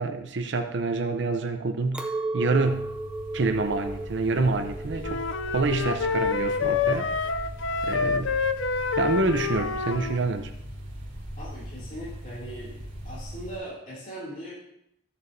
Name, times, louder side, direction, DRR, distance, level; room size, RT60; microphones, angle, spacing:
voice 1, 0.0-2.9 3.3-5.2 5.5-7.1 7.8-8.3 9.0-10.5, right 3 dB, 65° right, 7 dB, 0.6 m, -27 dB
Chink clink, 1.9-7.3, right 2 dB, 5° right, 0.5 m, -35 dB
sound 1, 2.6-13.6, equal, 40° right, 2.7 m, -40 dB
sound 2, 5.0-10.2, left 5 dB, 75° left, 0.5 m, -27 dB
voice 2, 11.4-12.7 13.0-14.5, equal, 40° left, -7 dB, 2.6 m, -39 dB
14.0 x 6.9 x 2.7 m, 0.77 s
head